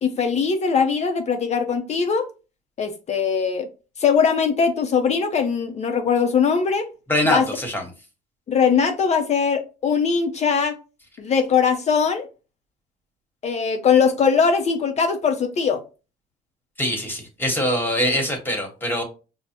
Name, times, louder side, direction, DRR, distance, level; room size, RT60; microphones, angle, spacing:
voice 1, 0.0-2.3 2.8-3.7 4.0-6.9 7.3-7.5 8.5-10.7 11.2-12.3 13.4-15.8, left 6 dB, 40° left, 0.5 m, -21 dB
voice 2, 7.1-7.8 16.8-19.0, equal, 10° left, 1.1 m, -23 dB
5.4 x 2.1 x 2.8 m
cardioid pair, 110°, 17 cm